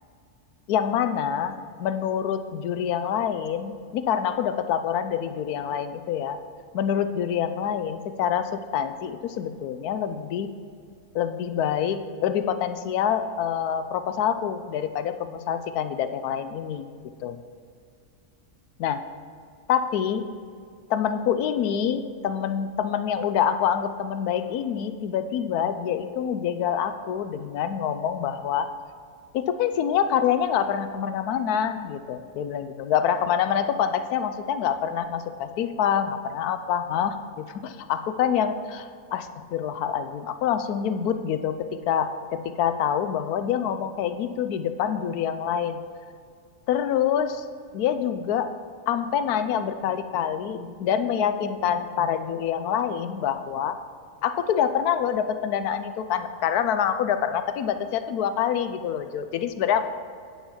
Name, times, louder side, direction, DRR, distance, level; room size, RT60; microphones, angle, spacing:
voice 1, 0.7-6.4 6.7-10.5 11.1-16.9 17.2-17.4 18.8-19.0 19.7-20.2 20.9-28.7 29.3-45.8 46.7-47.5 47.7-48.5 48.9-53.8 54.2-59.9, left 8 dB, 80° left, 10 dB, 1.1 m, -26 dB
8.7 x 7.2 x 5.6 m, 2.2 s
omnidirectional pair, 1.6 m